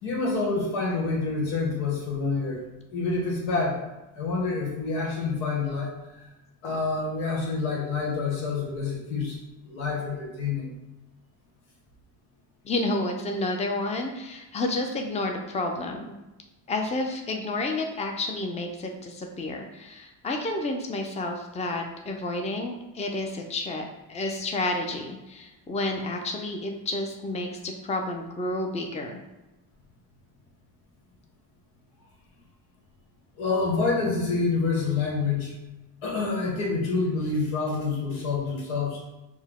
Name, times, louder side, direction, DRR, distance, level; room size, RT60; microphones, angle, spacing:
voice 1, 0.0-2.6 2.9-3.8 4.2-6.3 6.6-9.4 9.6-10.7 33.4-35.5 36.0-39.0, left 4 dB, 85° left, -1 dB, 1.2 m, -27 dB
voice 2, 12.6-16.1 16.7-29.2, left 2 dB, 15° left, 3 dB, 0.5 m, -30 dB
4.4 x 2.2 x 3.6 m, 1.0 s
supercardioid pair, 80°, 47 cm